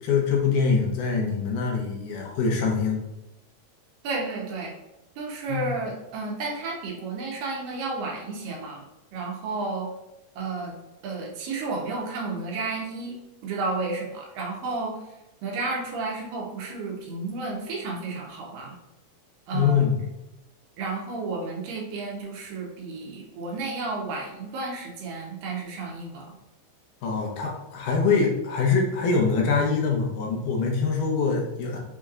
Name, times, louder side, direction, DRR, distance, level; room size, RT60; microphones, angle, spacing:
voice 1, 0.0-3.0 5.5-5.7 19.5-20.0 27.0-31.8, left 5 dB, 75° left, 0 dB, 2.3 m, -24 dB
voice 2, 4.0-4.7 5.2-8.8 9.1-9.9 10.4-10.7 11.0-13.2 13.4-15.0 15.4-18.7 19.5-19.8 20.8-26.3, right 3 dB, 80° right, -1 dB, 2.6 m, -32 dB
6.2 x 3.1 x 2.4 m, 0.93 s
omnidirectional pair, 3.9 m